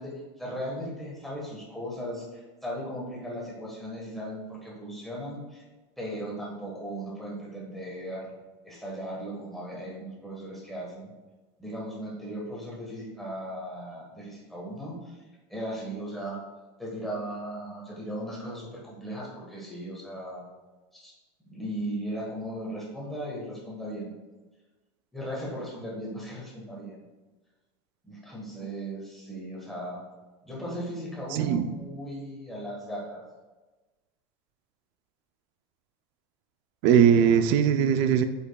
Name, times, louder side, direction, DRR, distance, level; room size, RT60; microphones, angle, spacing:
voice 1, 0.0-5.6 6.0-8.3 8.6-11.1 11.6-15.2 15.5-16.4 16.8-20.4 20.9-21.1 21.4-24.1 25.1-27.0 28.0-30.0 30.4-33.2, right 1 dB, ahead, -4 dB, 1.4 m, -37 dB
voice 2, 31.3-31.7 36.8-38.2, right 8 dB, 45° right, 10 dB, 0.4 m, -20 dB
8.3 x 5.3 x 2.3 m, 1.2 s
supercardioid pair, 165°, 15 cm